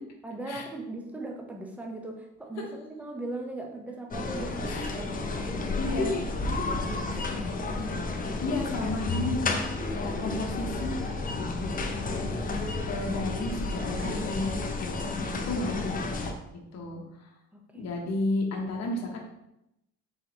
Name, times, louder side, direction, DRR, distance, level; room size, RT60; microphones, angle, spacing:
voice 1, 0.2-5.5 5.8-6.0 6.7-7.3 17.5-17.9, right 2 dB, 5° right, 1 dB, 0.7 m, -39 dB
sound 1, 4.1-16.3, left 3 dB, 30° left, 0.5 m, -31 dB
voice 2, 4.7-5.0 5.8-6.2 7.1-7.2 8.4-9.6 9.9-10.9 12.9-14.9 15.4-16.0 16.5-17.0 17.7-19.2, left 2 dB, 60° left, 0 dB, 0.9 m, -32 dB
4.0 x 3.5 x 2.9 m, 0.85 s
cardioid pair, 90°, 30 cm